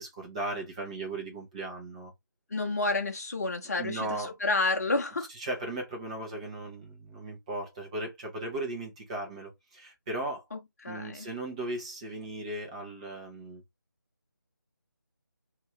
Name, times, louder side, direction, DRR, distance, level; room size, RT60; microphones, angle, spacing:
voice 1, 0.0-2.1 3.8-4.3 5.3-10.4 10.9-13.6, right 2 dB, 20° right, 1.0 m, -37 dB
voice 2, 2.5-5.3 10.5-11.3, left 3 dB, 50° left, 0.9 m, -30 dB
2.8 x 2.7 x 3.2 m
figure-of-eight pair, 155°, 11 cm